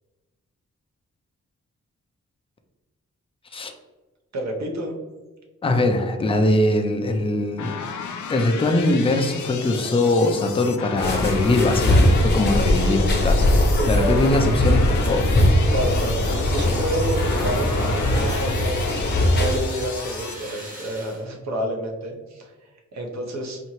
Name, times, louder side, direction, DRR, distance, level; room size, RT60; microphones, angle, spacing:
voice 1, 4.3-5.0 12.5-12.8 13.7-14.2 15.7-18.8 19.3-22.5 22.9-23.6, right 1 dB, 65° right, 1 dB, 0.8 m, -29 dB
voice 2, 5.6-7.7 8.3-13.6 13.9-15.3, left 2 dB, 20° left, 4 dB, 0.4 m, -21 dB
sound 1, 7.6-20.4, left 6 dB, 85° left, 0.5 m, -34 dB
sound 2, 11.0-19.6, left 1 dB, 35° left, 0.7 m, -20 dB
Fire, 15.0-21.2, right 1 dB, 25° right, 1.0 m, -41 dB
4.3 x 2.8 x 2.9 m, 1.2 s
wide cardioid pair, 150°, 29 cm